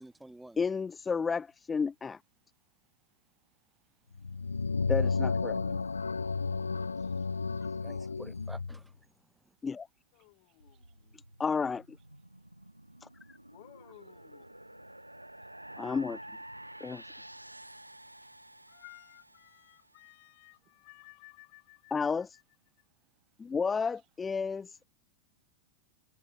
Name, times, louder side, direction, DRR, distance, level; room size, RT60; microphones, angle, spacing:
voice 1, 0.0-0.6 5.5-5.9 7.8-8.9, right 1 dB, 5° right, 1.8 m, -50 dB
voice 2, 0.6-2.2 4.9-5.6 9.6-9.9 11.4-11.8 13.0-13.1 15.8-16.2 16.8-17.0 21.9-22.4 23.4-24.8, left 5 dB, 15° left, 1.2 m, -31 dB
voice 3, 3.2-4.9 5.9-7.9 10.2-11.0 18.2-18.3 23.0-23.1 23.4-23.8, right 15 dB, 35° right, 3.4 m, -77 dB
sound 1, 4.1-8.8, left 4 dB, 75° left, 0.3 m, -32 dB
voice 4, 10.1-11.2 13.5-14.8 18.7-22.4, left 38 dB, 45° left, 7.8 m, -57 dB
sound 2, 10.6-20.0, right 1 dB, 85° right, 2.8 m, -50 dB
figure-of-eight pair, 90°, 0 cm